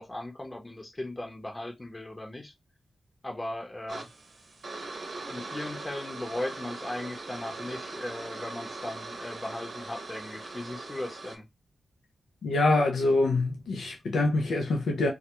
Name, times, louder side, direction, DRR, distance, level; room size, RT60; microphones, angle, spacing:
voice 1, 0.0-2.5 3.2-4.1 5.3-11.5, left 1 dB, 30° left, 0.8 m, -37 dB
sound 1, 3.9-11.4, right 3 dB, 65° right, 0.7 m, -40 dB
voice 2, 12.4-15.1, left 2 dB, 80° left, 0.5 m, -25 dB
2.3 x 2.1 x 2.9 m
supercardioid pair, 40°, 0 cm